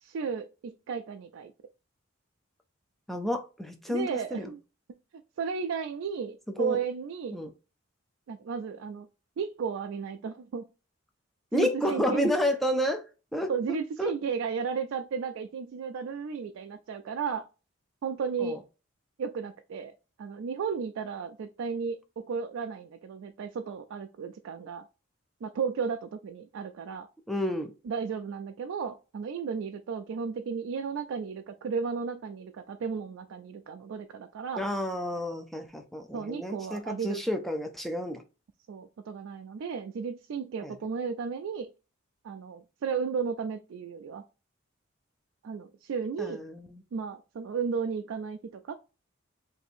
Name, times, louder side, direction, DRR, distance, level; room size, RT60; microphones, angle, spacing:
voice 1, 0.0-1.5 3.9-4.6 5.4-7.4 8.3-9.1 9.4-10.7 11.5-12.3 13.5-17.4 18.0-18.6 19.2-19.9 20.2-22.0 22.3-24.8 25.4-27.1 27.8-34.7 36.1-37.2 38.7-41.7 42.2-44.2 45.4-46.4 46.9-48.8, right 6 dB, 70° right, 6 dB, 0.3 m, -34 dB
voice 2, 3.1-4.5 6.6-6.8 7.3-7.5 11.5-13.0 13.3-14.1 18.4-18.6 27.3-27.7 34.6-38.2 40.6-40.7 46.2-46.8, left 1 dB, ahead, 4 dB, 0.4 m, -30 dB
2.6 x 2.6 x 4.2 m, 0.32 s
head